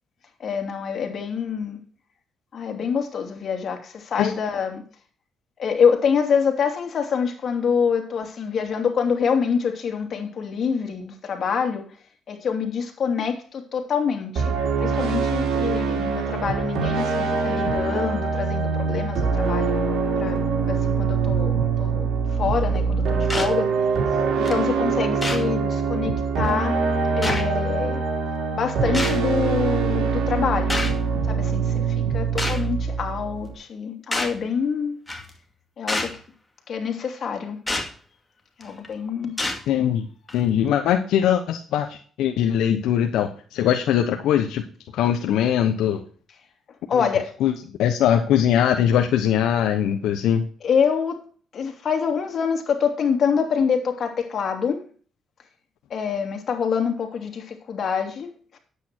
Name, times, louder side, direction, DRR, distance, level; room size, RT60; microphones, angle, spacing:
voice 1, 0.4-1.8 2.5-4.8 5.6-11.9 12.3-19.7 20.2-20.4 20.7-22.1 22.3-23.7 24.4-26.7 27.1-28.0 28.5-30.8 31.3-35.0 35.8-36.1 36.7-37.6 38.6-39.4 46.9-47.3 50.6-51.2 51.5-54.8 55.9-58.6, left 6 dB, 55° left, 4 dB, 2.7 m, -26 dB
sound 1, 14.4-33.5, right 5 dB, 70° right, 2.9 m, -23 dB
sound 2, 23.3-23.5 24.5-24.6 25.2-25.5 26.4-26.5 27.2-27.4 28.9-29.2 30.7-31.0 32.4-32.6 34.1-34.4 35.1-35.3 35.9-36.2 37.7-37.9 38.6-38.9 39.4-39.6 40.3-40.4, left 2 dB, 15° left, 2.3 m, -27 dB
voice 2, 39.7-40.0 40.3-44.7 44.9-46.0 46.9-47.1 47.4-47.5 47.8-50.4, left 9 dB, 85° left, 5 dB, 1.0 m, -21 dB
9.8 x 8.5 x 4.4 m, 0.42 s
cardioid pair, 90°, 0 cm